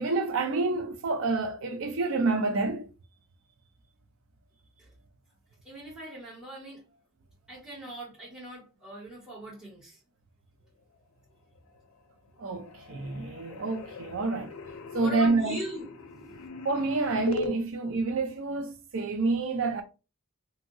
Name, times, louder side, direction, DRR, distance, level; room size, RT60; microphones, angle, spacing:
voice 1, 0.0-2.9 12.4-14.5 14.9-15.6 16.6-19.8, right 3 dB, 65° right, 0.5 m, -28 dB
voice 2, 5.6-6.8 7.5-10.0 15.0-15.9 16.2-16.4, right 1 dB, 5° right, 1.5 m, -40 dB
sound 1, 11.6-12.1 12.4-17.5, left 2 dB, 80° left, 0.5 m, -40 dB
2.7 x 2.7 x 2.6 m
head